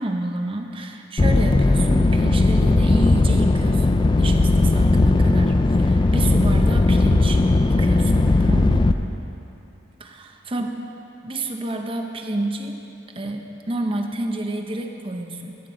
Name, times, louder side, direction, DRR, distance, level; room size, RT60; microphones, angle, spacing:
voice 1, 0.0-7.4 7.7-8.9 10.0-10.7 11.2-12.8 13.1-15.6, right 1 dB, 30° right, 4 dB, 0.8 m, -29 dB
sound 1, 1.2-8.9, left 2 dB, 25° left, 0.3 m, -17 dB
13.0 x 9.3 x 5.3 m, 2.9 s
head